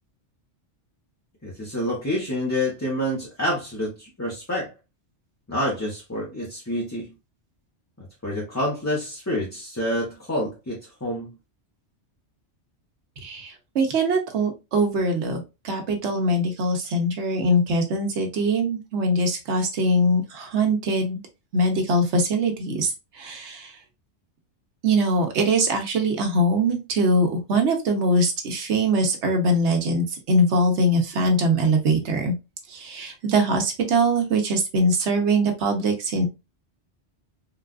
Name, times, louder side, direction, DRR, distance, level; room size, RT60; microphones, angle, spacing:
voice 1, 1.4-4.7 5.5-7.1 8.2-11.3, left 1 dB, 15° left, 0.7 m, -28 dB
voice 2, 13.2-21.2 21.5-23.7 24.8-32.3 32.7-36.3, right 1 dB, 70° right, 1.1 m, -22 dB
3.8 x 2.3 x 2.3 m
omnidirectional pair, 1.2 m